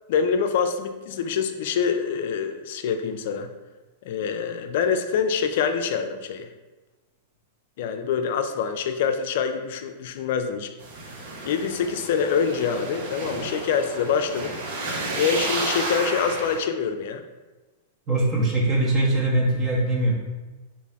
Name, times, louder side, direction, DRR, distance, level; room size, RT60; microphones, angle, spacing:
voice 1, 0.1-3.5 4.0-6.5 7.8-10.7 11.4-14.5 15.2-17.2, left 6 dB, 65° left, 7 dB, 0.3 m, -25 dB
sound 1, 10.8-16.6, right 2 dB, 65° right, 0.9 m, -32 dB
voice 2, 18.1-20.1, right 2 dB, 30° right, -3 dB, 0.9 m, -22 dB
3.2 x 2.6 x 3.4 m, 1.2 s
hypercardioid pair, 115°, 0 cm